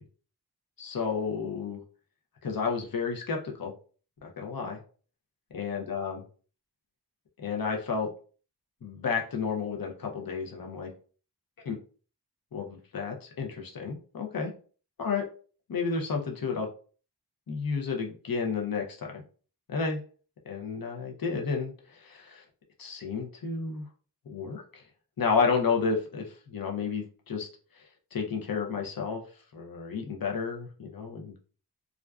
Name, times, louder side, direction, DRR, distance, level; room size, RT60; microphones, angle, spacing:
voice 1, 0.8-1.8 2.4-3.7 4.2-4.8 5.5-6.2 7.4-8.1 8.8-10.9 11.6-11.8 12.5-14.5 15.0-15.2 15.7-16.7 17.5-19.2 19.7-20.0 20.5-22.4 22.8-23.8 24.3-24.8 25.2-27.5 28.1-29.2 29.5-31.3, left 5 dB, 55° left, 1 dB, 0.7 m, -31 dB
2.5 x 2.2 x 2.3 m, 0.39 s
wide cardioid pair, 50°, 41 cm